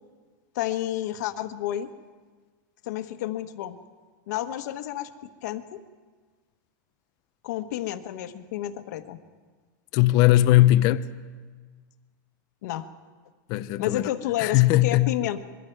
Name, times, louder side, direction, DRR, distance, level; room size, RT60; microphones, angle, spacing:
voice 1, 0.5-1.9 2.8-3.8 4.3-5.1 5.4-5.8 7.4-9.2 12.6-12.9 13.8-15.4, left 13 dB, 60° left, 1.3 m, -30 dB
voice 2, 9.9-11.0 13.5-14.0 14.4-15.1, left 16 dB, 35° left, 0.6 m, -19 dB
26.0 x 22.5 x 4.7 m
supercardioid pair, 165°, 11 cm